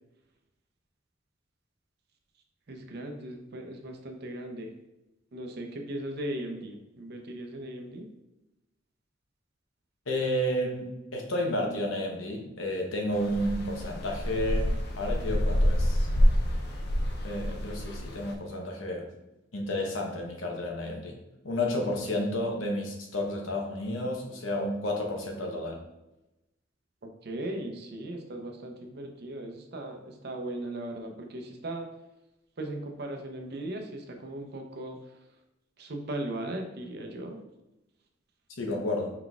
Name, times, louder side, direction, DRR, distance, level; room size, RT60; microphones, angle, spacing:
voice 1, 2.7-4.7 5.3-8.1 27.2-31.9 32.6-35.1 35.8-37.4, right 1 dB, 55° right, 3 dB, 0.6 m, -38 dB
voice 2, 10.1-14.7 15.0-16.1 17.2-19.1 19.5-21.1 21.4-25.8 38.6-39.1, left 1 dB, 90° left, 1 dB, 0.9 m, -31 dB
sound 1, 13.1-18.3, equal, 55° left, 0.5 m, -27 dB
4.5 x 3.9 x 2.3 m, 0.95 s
head